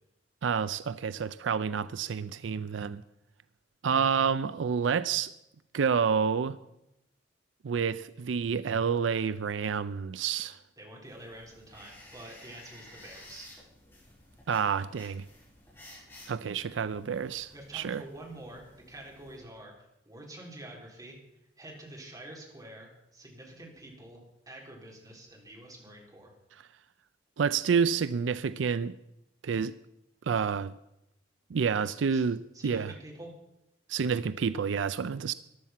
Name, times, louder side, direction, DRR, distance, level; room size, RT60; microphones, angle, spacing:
voice 1, 0.4-3.0 3.8-5.3 5.7-6.6 7.6-10.6 14.5-15.2 16.3-18.0 27.4-29.0 29.4-29.8 30.3-30.7 31.5-32.9 33.9-35.3, right 6 dB, 80° right, 0.4 m, -29 dB
voice 2, 10.8-13.5 17.5-21.2 21.6-24.2 24.5-26.3 31.8-32.3 32.5-33.3, right 1 dB, 20° right, 4.0 m, -47 dB
sound 1, 11.0-19.4, left 1 dB, 15° left, 7.5 m, -54 dB
15.0 x 11.5 x 5.9 m
head